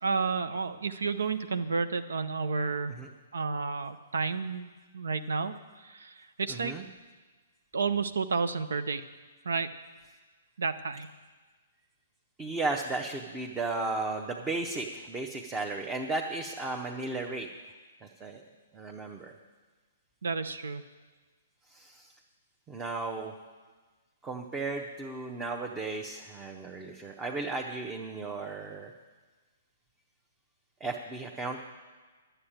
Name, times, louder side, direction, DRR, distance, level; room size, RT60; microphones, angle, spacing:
voice 1, 0.0-3.0 3.3-4.7 4.9-5.5 5.8-6.7 7.7-9.0 9.4-9.7 10.6-11.1 20.2-20.8, right 4 dB, 65° right, 11 dB, 0.6 m, -31 dB
voice 2, 6.5-6.9 12.4-17.5 18.0-18.4 18.7-19.3 21.7-22.1 22.7-23.3 24.2-28.9 30.8-31.6, right 3 dB, 15° right, 1 dB, 0.9 m, -35 dB
11.0 x 8.0 x 8.8 m, 1.4 s
figure-of-eight pair, 120°, 0 cm